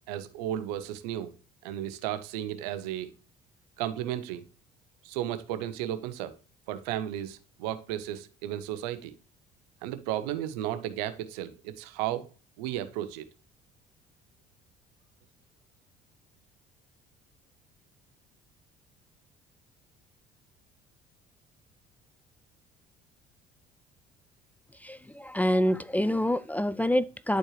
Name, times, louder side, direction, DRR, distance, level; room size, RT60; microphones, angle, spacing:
voice 1, 0.1-1.3 1.6-3.1 3.8-4.4 5.0-6.4 6.7-9.1 9.8-12.3 12.6-13.3, right 12 dB, 85° right, 0.9 m, -34 dB
voice 2, 24.8-27.4, equal, 10° left, 0.4 m, -26 dB
10.5 x 4.5 x 3.2 m
hypercardioid pair, 65°, 20 cm